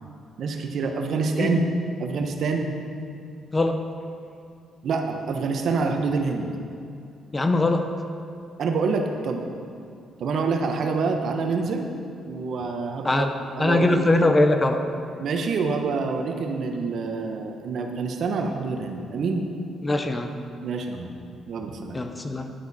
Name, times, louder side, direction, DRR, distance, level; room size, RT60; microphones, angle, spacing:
voice 1, 0.4-1.6 2.0-2.7 4.8-6.5 8.6-9.5 10.2-11.9 12.3-13.3 13.6-14.3 15.2-19.4 20.6-21.1 21.5-22.0, right 4 dB, 65° right, 4 dB, 1.1 m, -26 dB
voice 2, 3.5-3.8 7.3-7.9 13.0-13.3 13.6-14.8 19.8-20.4 21.9-22.5, left 2 dB, 20° left, 6 dB, 0.8 m, -21 dB
10.5 x 9.3 x 4.2 m, 2.4 s
cardioid pair, 90°, 0 cm